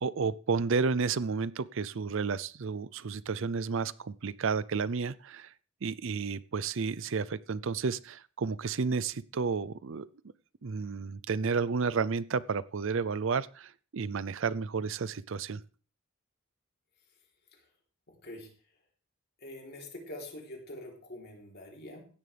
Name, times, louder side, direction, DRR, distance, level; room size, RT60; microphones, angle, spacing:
voice 1, 0.0-5.5 5.8-10.1 10.6-15.6, right 5 dB, 65° right, 20 dB, 0.5 m, -31 dB
voice 2, 18.1-18.5 19.4-22.1, left 1 dB, 50° left, 1 dB, 3.6 m, -45 dB
16.0 x 11.0 x 3.4 m, 0.39 s
head